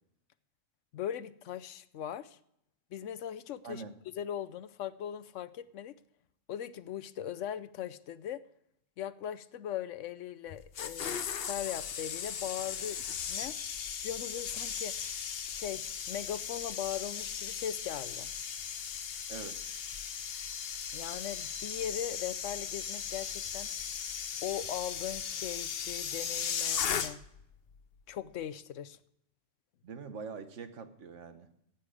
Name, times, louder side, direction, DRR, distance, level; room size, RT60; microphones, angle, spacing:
voice 1, 0.9-2.4 2.9-3.8 4.1-5.9 6.5-8.4 9.0-13.6 14.0-15.0 15.5-18.3 20.9-23.7 24.4-27.2 28.1-29.0, left 10 dB, 85° left, 16 dB, 1.0 m, -39 dB
voice 2, 3.6-4.0 19.3-19.6 29.8-31.5, right 5 dB, 80° right, 9 dB, 1.4 m, -43 dB
sound 1, 10.5-27.4 27.7-28.0, left 7 dB, 60° left, 0.9 m, -37 dB
15.0 x 8.8 x 4.9 m, 0.76 s
omnidirectional pair, 1.2 m